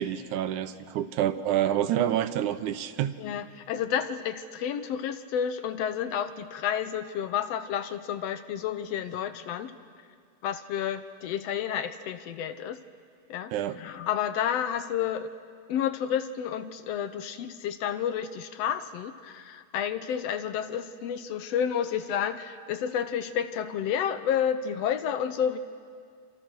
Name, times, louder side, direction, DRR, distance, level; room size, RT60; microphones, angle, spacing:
voice 1, 0.0-3.1 13.5-13.8, right 11 dB, 75° right, 11 dB, 2.3 m, -27 dB
voice 2, 3.2-9.7 10.4-12.8 13.3-15.3 15.7-25.6, left 9 dB, 70° left, 11 dB, 1.6 m, -30 dB
27.5 x 27.0 x 6.4 m, 2.2 s
omnidirectional pair, 3.7 m